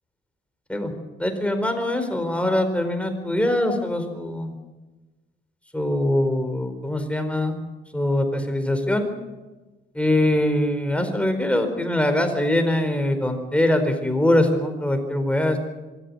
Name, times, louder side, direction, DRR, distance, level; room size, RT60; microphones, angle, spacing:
voice 1, 1.2-4.5 5.7-7.6 7.9-9.1 9.9-15.6, left 1 dB, 5° left, 7 dB, 4.3 m, -23 dB
24.5 x 14.0 x 9.8 m, 1.2 s
cardioid pair, 90°, 20 cm